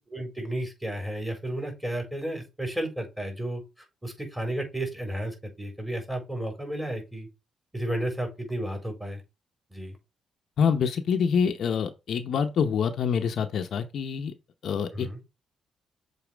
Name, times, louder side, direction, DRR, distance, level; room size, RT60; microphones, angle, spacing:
voice 1, 0.0-3.6 4.0-7.3 7.7-9.2 9.7-10.0 14.9-15.2, right 1 dB, 10° right, 3.9 m, -32 dB
voice 2, 10.6-14.3 14.6-15.2, left 6 dB, 65° left, 0.8 m, -26 dB
7.1 x 4.1 x 3.4 m
cardioid pair, 90°, 0 cm